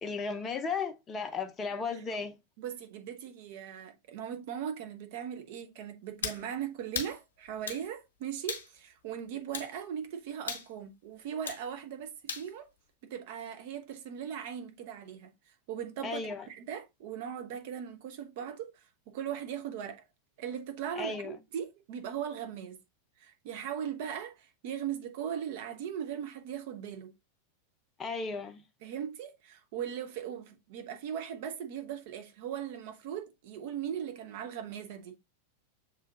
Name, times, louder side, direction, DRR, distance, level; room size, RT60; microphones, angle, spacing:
voice 1, 0.0-2.3 16.0-16.5 21.0-21.4 28.0-28.6, left 4 dB, 20° left, 0.6 m, -35 dB
voice 2, 2.6-12.7 13.0-15.3 15.7-18.7 19.1-20.0 20.4-22.8 23.2-27.1 28.8-35.1, right 9 dB, 50° right, 0.7 m, -39 dB
sound 1, 6.2-6.4 6.9-7.2 7.7-7.8 8.5-8.7 9.5-9.7 10.5-10.7 11.5-11.6 12.3-12.5, left 5 dB, 65° left, 0.8 m, -36 dB
6.9 x 2.7 x 2.3 m
figure-of-eight pair, 90°, 0 cm